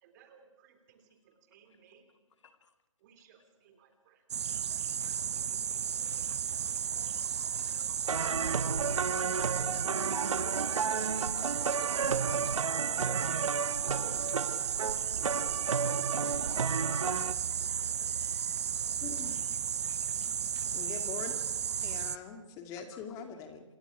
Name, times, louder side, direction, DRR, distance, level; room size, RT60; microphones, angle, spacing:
voice 1, 0.0-2.1 3.0-4.2 5.0-7.0 9.9-11.9 12.9-14.1, right 6 dB, 35° right, 7 dB, 3.1 m, -60 dB
voice 2, 2.4-2.7 5.8-5.9 7.5-9.1 11.5-11.7 13.3-13.4 13.8-14.5 16.1-16.2 17.0-17.3 19.9-21.0 22.9-23.0, left 6 dB, 60° left, 7 dB, 2.2 m, -62 dB
sound 1, 4.3-22.2, right 8 dB, 55° right, 0.9 m, -34 dB
sound 2, 8.1-17.3, right 5 dB, 75° right, 1.2 m, -33 dB
voice 3, 12.8-13.2 19.0-19.5 20.7-21.3 21.8-23.6, left 6 dB, 20° left, 5 dB, 2.5 m, -43 dB
27.0 x 22.0 x 5.0 m, 1.0 s
figure-of-eight pair, 145°, 17 cm